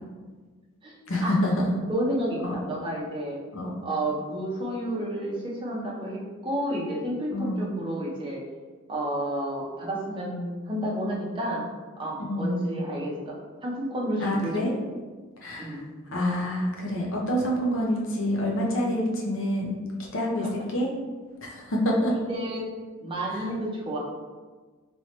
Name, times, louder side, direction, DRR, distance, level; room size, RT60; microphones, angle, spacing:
voice 1, 1.1-1.7 2.4-2.5 3.5-3.8 7.3-7.7 12.2-12.6 14.2-14.7 15.4-15.8 16.1-19.8 20.1-20.9 21.4-22.1 23.3-23.4, equal, 65° left, -2 dB, 0.7 m, -27 dB
voice 2, 1.9-3.4 3.8-8.4 8.9-11.6 12.0-13.4 13.6-14.9 15.6-15.9 22.1-22.7 23.0-24.0, right 1 dB, 25° right, -5 dB, 0.7 m, -31 dB
3.1 x 3.0 x 2.8 m, 1.4 s
head